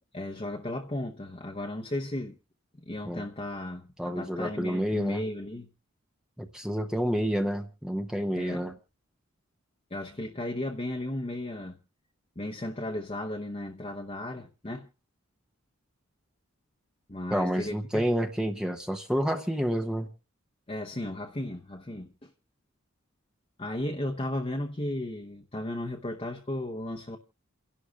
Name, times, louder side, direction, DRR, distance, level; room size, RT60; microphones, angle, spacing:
voice 1, 0.1-2.4 2.8-5.7 8.4-8.6 9.9-11.8 12.4-14.9 17.1-18.1 20.7-22.3 23.6-27.2, left 1 dB, 30° left, 0.8 m, -35 dB
voice 2, 4.0-5.2 6.4-8.7 17.3-20.1, equal, 5° right, 0.7 m, -29 dB
29.0 x 11.5 x 2.4 m
head